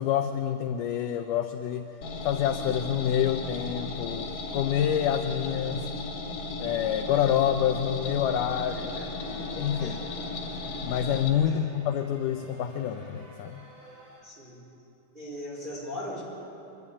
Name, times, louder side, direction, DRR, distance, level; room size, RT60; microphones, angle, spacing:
voice 1, 0.0-1.9 2.2-5.9 6.6-8.9 9.3-10.0 10.8-13.6, left 9 dB, 75° left, 6 dB, 2.1 m, -27 dB
sound 1, 2.0-11.3, left 3 dB, 55° left, 3.3 m, -36 dB
sound 2, 8.6-14.2, right 1 dB, 30° right, 6.5 m, -53 dB
voice 2, 8.7-9.1 9.7-10.1 10.5-10.6 11.4-11.7 14.2-14.6 15.1-16.2, left 1 dB, 15° right, -5 dB, 4.2 m, -39 dB
25.0 x 12.0 x 9.8 m, 2.9 s
omnidirectional pair, 4.2 m